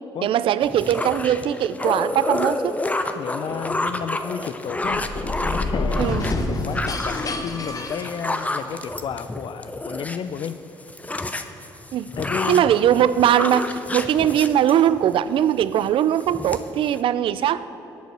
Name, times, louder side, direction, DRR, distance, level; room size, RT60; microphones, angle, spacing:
voice 1, 0.2-2.8 6.0-6.3 11.9-12.1 12.5-17.6, right 10 dB, 65° right, 16 dB, 0.4 m, -20 dB
sound 1, 0.6-10.5 10.8-15.2 15.6-15.9 16.2-17.0, left 2 dB, 15° left, 0.7 m, -29 dB
voice 2, 3.2-5.1 5.4-10.6 12.2-12.8, left 8 dB, 60° left, 12 dB, 0.4 m, -32 dB
sound 2, 4.8-8.8, left 2 dB, 40° left, 1.0 m, -28 dB
11.0 x 5.3 x 7.9 m, 3.0 s
supercardioid pair, 55°, 10 cm